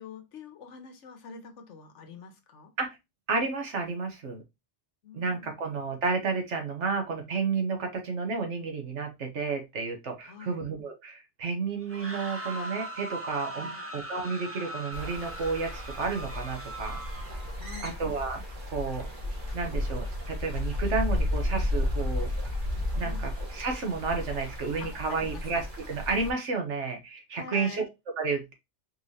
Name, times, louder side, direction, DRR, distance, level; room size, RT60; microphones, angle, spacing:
voice 1, 0.0-2.7 5.0-5.6 10.2-10.6 13.5-13.9 17.6-18.0 23.0-23.2 24.8-25.4 27.3-27.9, left 5 dB, 85° left, 1.2 m, -45 dB
voice 2, 3.3-4.4 5.1-17.0 17.8-18.4 18.7-19.1 19.5-22.3 23.0-23.1 23.5-27.8 28.2-28.5, right 4 dB, 80° right, 1.4 m, -31 dB
sound 1, 11.8-17.6, right 1 dB, 15° right, 0.6 m, -40 dB
sound 2, 14.9-26.3, left 1 dB, 45° right, 1.3 m, -33 dB
4.4 x 3.2 x 2.7 m
omnidirectional pair, 1.2 m